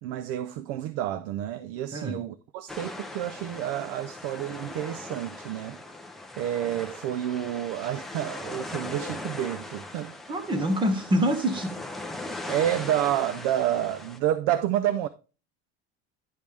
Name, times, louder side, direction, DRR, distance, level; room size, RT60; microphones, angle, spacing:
voice 1, 0.0-5.8 6.4-10.1 12.5-15.1, right 12 dB, 55° right, 0.5 m, -29 dB
sound 1, 2.7-14.2, left 2 dB, ahead, 0.5 m, -39 dB
voice 2, 10.3-11.8, equal, 15° right, 1.0 m, -25 dB
10.5 x 5.2 x 3.3 m
cardioid pair, 170°, 31 cm